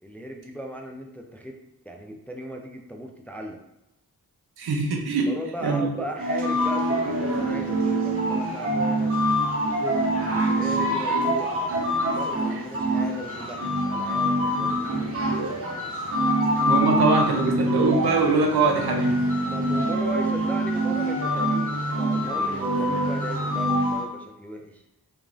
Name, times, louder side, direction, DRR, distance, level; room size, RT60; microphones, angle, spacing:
voice 1, 0.0-1.6 1.9-3.6 5.3-9.2 9.6-11.6 12.1-15.3 19.4-24.8, right 1 dB, 5° left, 2 dB, 0.3 m, -37 dB
voice 2, 4.6-5.3 5.6-5.9 16.6-19.2, right 3 dB, 80° right, 2 dB, 0.6 m, -23 dB
sound 1, 6.2-24.0, right 1 dB, 35° right, 0.8 m, -25 dB
2.9 x 2.5 x 2.4 m, 0.91 s
cardioid pair, 45°, 38 cm